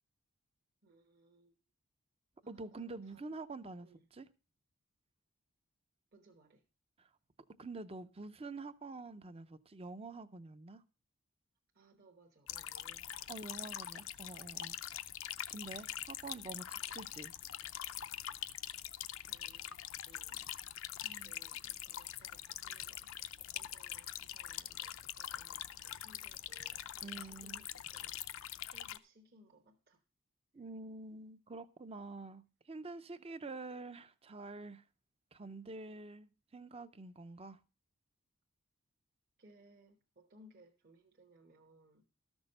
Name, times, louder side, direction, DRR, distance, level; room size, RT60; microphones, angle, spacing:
voice 1, 0.8-1.5 2.4-3.3 3.8-4.1 6.1-6.6 11.7-13.3 19.3-19.8 20.0-20.6 21.2-28.2 28.6-30.0 30.5-30.6 39.4-42.0, right 1 dB, 45° right, 1.1 m, -64 dB
voice 2, 2.5-4.3 7.6-10.8 13.3-14.7 15.5-17.3 21.0-21.3 27.0-27.6 30.5-34.8 35.3-37.6, right 3 dB, 25° right, 0.5 m, -47 dB
sound 1, 12.5-29.0, left 12 dB, 60° left, 0.5 m, -44 dB
13.0 x 6.2 x 5.3 m
head